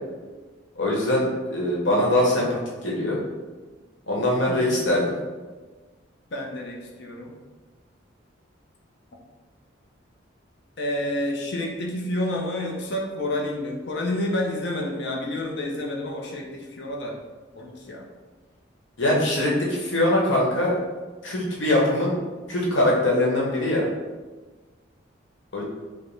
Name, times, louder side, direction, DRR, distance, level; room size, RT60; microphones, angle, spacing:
voice 1, 0.8-2.5 2.8-3.2 4.1-5.2 19.0-20.7 21.2-22.2 22.5-23.8 25.5-25.6, left 1 dB, 75° left, -3 dB, 1.1 m, -22 dB
voice 2, 4.5-4.8 6.3-7.3 10.8-17.2 17.6-18.0, left 1 dB, 60° left, -1 dB, 0.6 m, -29 dB
4.9 x 2.1 x 3.2 m, 1.3 s
head